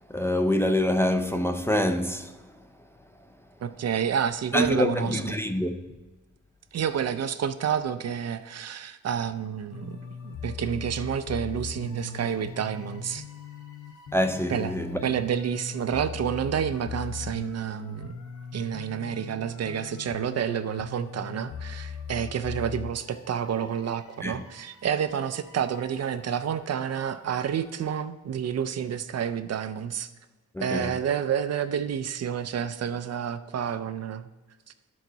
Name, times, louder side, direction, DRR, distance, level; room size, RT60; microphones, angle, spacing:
voice 1, 0.1-2.3 4.5-5.8 14.1-15.0 24.2-24.4 30.5-30.9, left 1 dB, 10° left, 0.4 m, -25 dB
voice 2, 3.6-5.2 6.7-10.0 10.2-13.2 14.5-14.8 15.0-18.1 18.5-30.1 30.6-34.3, right 8 dB, 55° right, 0.4 m, -29 dB
sound 1, 9.7-27.9, left 5 dB, 70° left, 0.8 m, -40 dB
12.0 x 4.6 x 3.9 m
wide cardioid pair, 110°, 31 cm